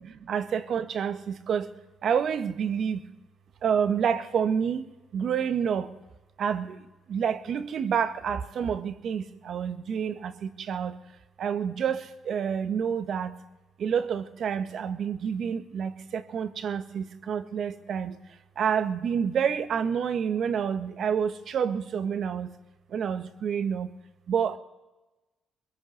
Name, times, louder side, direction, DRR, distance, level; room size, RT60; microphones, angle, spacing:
voice 1, 0.3-1.7 2.0-3.0 3.6-4.8 5.1-5.9 6.4-6.7 7.1-10.9 11.4-12.0 12.3-13.3 13.8-18.1 18.6-22.5 22.9-23.9 24.3-24.6, right 7 dB, 65° right, 1.5 m, -28 dB
22.5 x 21.0 x 8.0 m
cardioid pair, 90°, 0 cm